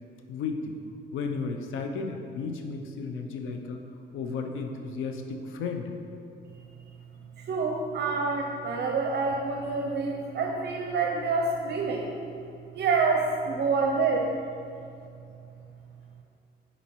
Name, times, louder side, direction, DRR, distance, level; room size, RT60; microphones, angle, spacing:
voice 1, 0.3-0.8 1.1-3.8 4.1-5.9, left 4 dB, 85° left, 4 dB, 0.7 m, -33 dB
voice 2, 7.4-12.1 12.7-14.3, right 4 dB, 60° right, 1 dB, 0.6 m, -27 dB
7.3 x 4.2 x 4.6 m, 2.5 s
cardioid pair, 90°, 20 cm